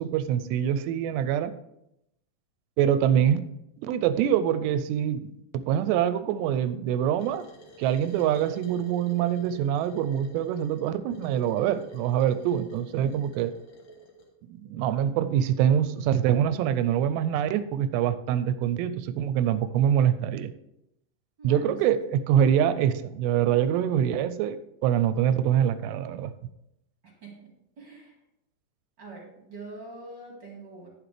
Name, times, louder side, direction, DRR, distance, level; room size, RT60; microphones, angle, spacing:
voice 1, 0.0-1.5 2.8-3.4 3.8-7.4 7.8-13.5 14.5-20.5 21.4-26.3, right 10 dB, 85° right, 13 dB, 2.6 m, -25 dB
sound 1, 7.2-14.3, right 3 dB, 50° left, 2.4 m, -48 dB
voice 2, 21.4-21.8 27.0-28.2 29.0-30.9, right 3 dB, 35° right, -1 dB, 1.9 m, -44 dB
11.0 x 10.0 x 3.3 m, 0.82 s
omnidirectional pair, 4.9 m